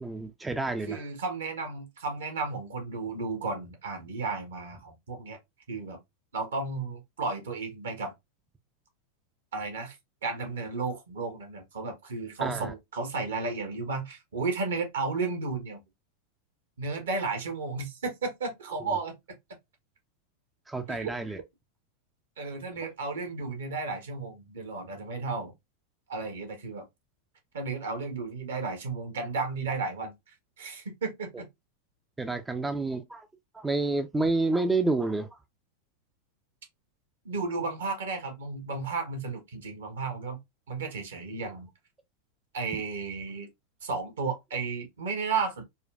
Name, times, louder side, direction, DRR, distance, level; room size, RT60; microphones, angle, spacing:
voice 1, 0.0-1.0 12.4-12.7 20.7-21.4 32.2-33.3 33.5-35.4 42.7-42.8, right 2 dB, 10° right, 0.3 m, -29 dB
voice 2, 0.9-5.4 5.7-6.0 6.3-8.1 9.5-10.0 10.2-15.8 16.8-19.1 20.9-21.1 22.4-25.5 26.1-26.8 27.5-30.1 30.6-31.5 37.2-40.4 40.7-41.7 42.5-43.5 43.8-45.6, right 4 dB, 65° right, 1.0 m, -33 dB
4.1 x 2.2 x 2.4 m
figure-of-eight pair, 90°, 0 cm